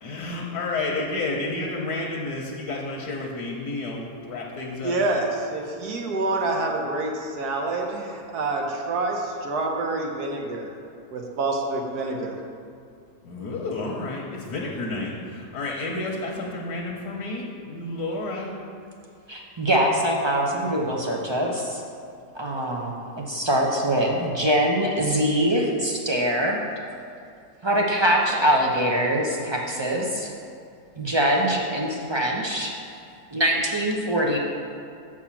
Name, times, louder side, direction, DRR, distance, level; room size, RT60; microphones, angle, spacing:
voice 1, 0.0-5.0 13.2-18.5, left 2 dB, 80° left, -2 dB, 1.5 m, -30 dB
voice 2, 4.8-10.7 11.1-12.4, right 2 dB, 70° right, 1 dB, 1.5 m, -27 dB
voice 3, 19.3-21.8 22.3-22.9 23.3-26.6 27.6-30.3 31.0-32.7 33.3-34.4, right 1 dB, 40° right, -1 dB, 0.3 m, -23 dB
7.1 x 4.9 x 7.1 m, 2.4 s
omnidirectional pair, 1.7 m